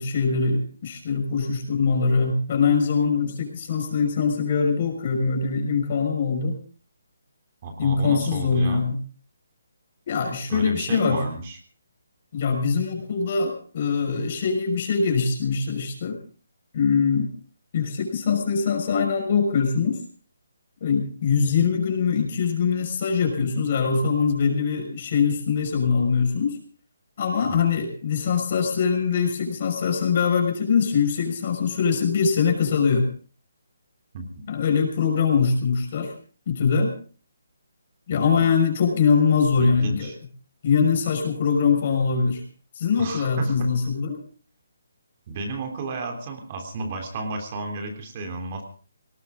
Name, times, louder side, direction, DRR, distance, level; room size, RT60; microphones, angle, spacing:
voice 1, 0.0-6.6 7.8-9.0 10.1-11.2 12.3-16.2 16.7-17.3 17.7-20.0 20.8-26.6 27.2-33.1 34.5-36.1 36.5-36.9 38.1-40.1 40.6-42.4 42.8-44.2, left 5 dB, 40° left, 4 dB, 5.9 m, -22 dB
voice 2, 7.6-8.8 10.5-11.6 27.5-27.8 34.1-34.4 38.1-38.5 39.6-40.2 43.0-43.7 45.3-48.6, right 2 dB, 30° right, 4 dB, 3.4 m, -32 dB
19.0 x 18.5 x 3.9 m, 0.41 s
hypercardioid pair, 165°, 0 cm